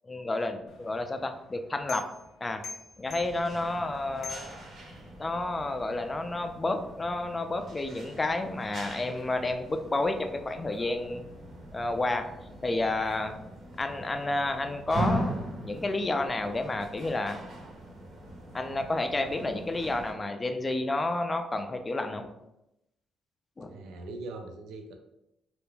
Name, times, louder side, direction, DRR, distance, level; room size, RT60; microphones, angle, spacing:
voice 1, 0.1-2.0 2.4-2.6 3.0-4.5 5.2-11.2 11.7-12.3 12.6-13.3 13.8-15.3 15.6-17.4 18.5-22.3 23.6-23.7, left 2 dB, 25° left, 6 dB, 0.3 m, -30 dB
sound 1, 0.7-5.4, left 4 dB, 80° left, 0.5 m, -46 dB
sound 2, 3.0-20.1, right 1 dB, 60° right, 0.8 m, -40 dB
voice 2, 3.5-3.8 23.7-24.9, right 2 dB, 85° right, 4 dB, 0.4 m, -42 dB
2.4 x 2.2 x 3.2 m, 0.87 s
cardioid pair, 90°, 0 cm